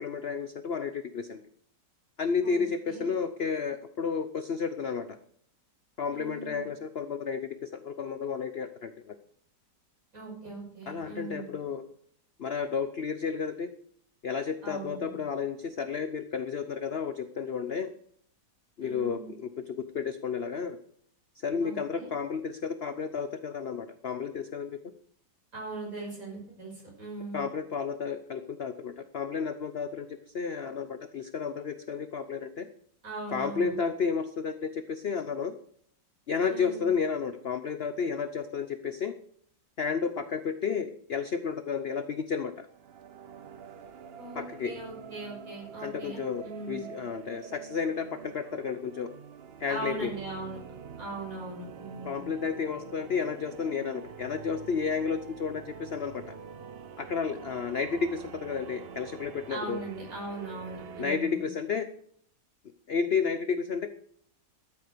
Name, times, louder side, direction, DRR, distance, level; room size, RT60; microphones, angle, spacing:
voice 1, 0.0-1.4 2.2-5.2 6.0-9.2 10.9-11.8 12.4-13.7 14.2-17.9 18.8-20.8 21.4-24.8 27.3-32.7 33.3-35.5 36.3-39.1 39.8-42.7 44.4-44.7 45.8-49.1 49.6-50.1 52.0-56.3 57.0-59.8 61.0-61.9 62.9-63.9, left 6 dB, 55° left, 10 dB, 0.7 m, -32 dB
voice 2, 6.1-6.6 10.1-11.5 14.6-15.1 18.8-19.3 21.6-22.1 25.5-27.4 33.0-33.8 36.4-36.9 44.2-46.9 49.7-50.6 51.0-52.3 59.5-61.4, right 2 dB, 50° right, -3 dB, 6.4 m, -40 dB
sound 1, 42.7-61.1, right 7 dB, 70° right, 0.5 m, -46 dB
13.0 x 8.7 x 6.8 m, 0.64 s
omnidirectional pair, 1.9 m